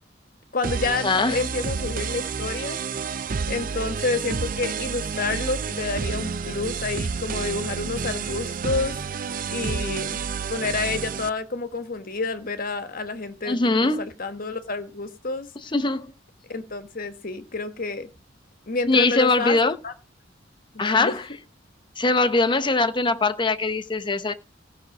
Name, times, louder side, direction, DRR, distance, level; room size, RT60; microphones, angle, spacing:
voice 1, 0.5-2.8 3.5-9.0 9.5-10.2 10.5-15.5 16.5-18.1 18.7-19.6 19.8-19.9 20.7-21.2, left 3 dB, 50° left, 1.4 m, -29 dB
sound 1, 0.6-11.3, right 5 dB, 45° right, 0.6 m, -30 dB
voice 2, 1.0-1.4 13.5-14.0 15.7-16.1 18.9-19.8 20.8-21.2 22.0-24.3, left 3 dB, 25° left, 0.9 m, -21 dB
15.5 x 6.2 x 6.1 m
head